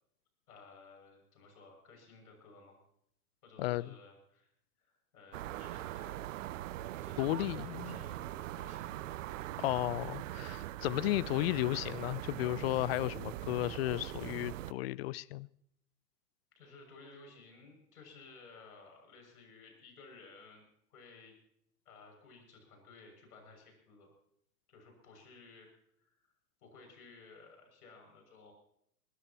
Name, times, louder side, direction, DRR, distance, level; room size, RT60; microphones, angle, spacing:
voice 1, 0.5-2.8 3.4-4.5 4.8-6.2 6.8-8.9 16.6-20.6 20.9-21.3 21.9-24.1 24.7-25.7 26.0-26.3 26.6-28.5, left 3 dB, 70° left, 6.9 m, -56 dB
voice 2, 3.6-3.9 7.2-8.0 9.6-15.5, left 17 dB, 40° left, 0.5 m, -34 dB
sound 1, 5.3-14.7, right 14 dB, 55° right, 0.7 m, -42 dB
21.5 x 20.0 x 3.0 m
hypercardioid pair, 115°, 47 cm